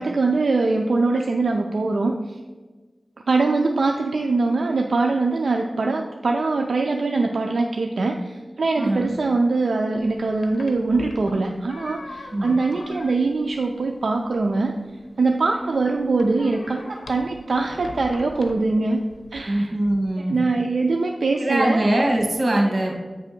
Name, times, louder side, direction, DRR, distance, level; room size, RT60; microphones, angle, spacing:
voice 1, 0.0-2.4 3.3-14.7 15.2-19.0 19.3-19.7 20.3-21.9, right 3 dB, 85° right, 3 dB, 0.4 m, -22 dB
voice 2, 8.8-9.2 12.3-12.5 19.4-20.4 21.4-23.0, right 1 dB, 60° right, 0 dB, 1.7 m, -22 dB
sound 1, 10.0-19.5, left 2 dB, 85° left, 0.8 m, -43 dB
8.3 x 3.4 x 5.9 m, 1.3 s
wide cardioid pair, 55°, 0 cm